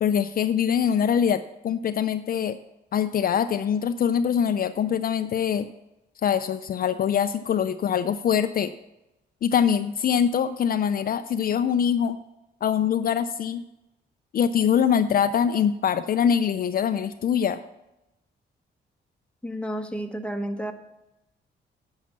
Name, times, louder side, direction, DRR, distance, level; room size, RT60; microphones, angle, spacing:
voice 1, 0.0-2.6 2.9-5.7 6.2-8.7 9.4-12.2 12.6-13.6 14.3-17.6, left 8 dB, 50° left, 10 dB, 0.4 m, -23 dB
voice 2, 19.4-20.7, right 1 dB, 5° left, 5 dB, 0.9 m, -31 dB
10.5 x 5.7 x 7.3 m, 0.94 s
cardioid pair, 120°, 19 cm